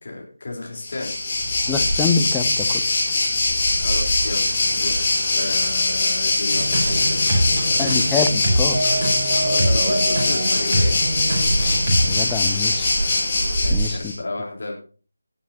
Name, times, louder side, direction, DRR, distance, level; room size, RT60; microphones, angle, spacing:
voice 1, 0.0-1.1 3.7-7.9 9.4-11.0 13.6-14.7, left 2 dB, 50° left, 0 dB, 3.7 m, -32 dB
Waves surf, 0.8-14.1, left 2 dB, 30° left, 4.1 m, -21 dB
voice 2, 1.7-2.7 7.8-8.8 12.0-12.9 13.7-14.1, left 5 dB, 10° left, 6 dB, 0.6 m, -25 dB
sound 1, 6.5-12.2, right 1 dB, 35° right, 4.4 m, -23 dB
sound 2, 7.3-7.7 8.5-8.6 8.8-9.5 9.9-10.0 11.6-11.8 12.1-12.3, equal, 10° right, 5.0 m, -37 dB
17.5 x 8.5 x 2.8 m, 0.38 s
figure-of-eight pair, 160°, 0 cm